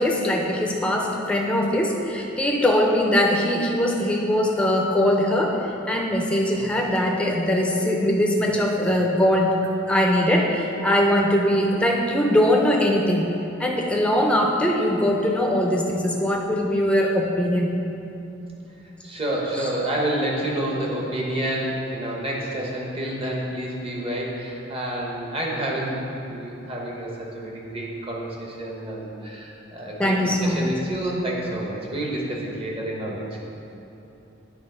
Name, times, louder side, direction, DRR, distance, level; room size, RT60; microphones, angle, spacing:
voice 1, 0.0-5.6 5.9-9.5 9.9-13.2 13.6-17.7 30.0-30.7, left 1 dB, 5° left, 0 dB, 0.6 m, -21 dB
voice 2, 6.5-6.8 19.0-26.0 26.3-33.2, right 1 dB, 30° right, -3 dB, 1.0 m, -29 dB
8.9 x 3.9 x 5.5 m, 2.9 s
head